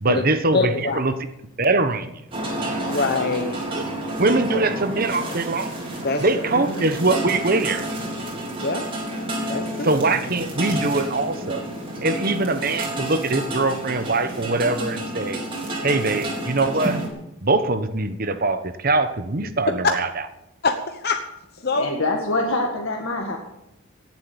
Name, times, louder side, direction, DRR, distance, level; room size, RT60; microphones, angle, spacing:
voice 1, 0.0-1.1 1.6-2.2 3.7-3.8 4.2-5.7 6.2-7.9 9.8-11.6 12.0-15.4 15.8-17.0 17.4-20.1, right 3 dB, 45° right, 10 dB, 1.2 m, -22 dB
voice 2, 0.5-1.0 2.9-3.6 4.5-4.7 6.0-6.2 8.6-8.8 9.5-9.9 20.6-21.2 21.6-21.9, left 3 dB, 45° left, 5 dB, 1.1 m, -24 dB
sound 1, 2.3-17.1, right 1 dB, 25° right, 3.6 m, -30 dB
voice 3, 6.5-6.9 21.7-23.4, left 2 dB, 70° left, 2 dB, 1.9 m, -25 dB
17.5 x 7.6 x 8.0 m, 0.89 s
head